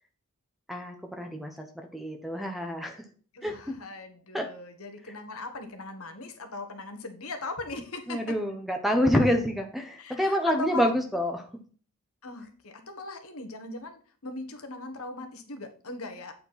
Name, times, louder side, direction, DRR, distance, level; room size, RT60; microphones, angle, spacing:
voice 1, 0.7-3.0 3.4-3.7 4.3-4.5 8.1-11.5, equal, ahead, 4 dB, 0.9 m, -27 dB
voice 2, 3.3-8.2 10.0-10.9 12.2-16.3, left 2 dB, 80° left, 6 dB, 1.5 m, -39 dB
8.5 x 4.5 x 5.7 m, 0.41 s
head